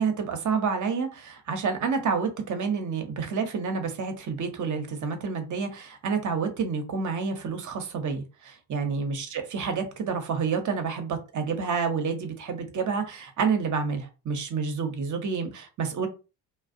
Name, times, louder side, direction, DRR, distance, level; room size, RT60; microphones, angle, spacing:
voice 1, 0.0-16.1, right 5 dB, 40° right, 6 dB, 0.8 m, -29 dB
2.3 x 2.0 x 2.6 m, 0.31 s
hypercardioid pair, 50°, 47 cm